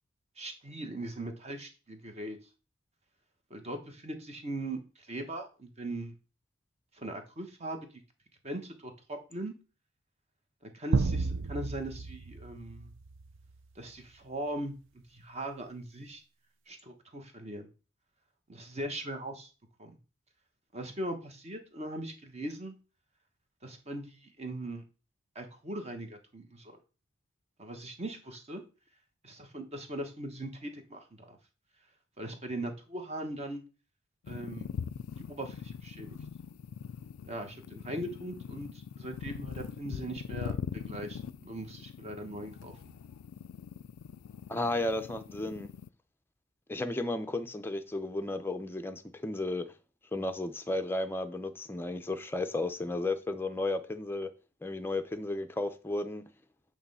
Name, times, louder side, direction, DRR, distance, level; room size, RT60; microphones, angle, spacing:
voice 1, 0.4-2.4 3.5-6.1 6.9-8.0 8.4-9.5 10.6-12.9 13.7-16.2 16.7-17.7 18.5-19.5 19.8-20.0 20.7-22.7 23.6-24.8 25.3-26.8 27.6-28.6 29.2-31.4 32.2-33.6 34.3-34.7 35.2-36.2 37.2-38.7 39.0-42.9, right 1 dB, 30° right, 1.2 m, -40 dB
sound 1, 10.9-13.5, right 4 dB, 60° right, 0.5 m, -32 dB
sound 2, 34.2-45.9, left 7 dB, 75° left, 0.3 m, -42 dB
voice 2, 44.5-45.7 46.7-49.7 50.1-54.3 54.6-56.2, left 2 dB, 10° left, 0.6 m, -33 dB
8.5 x 3.2 x 5.5 m
head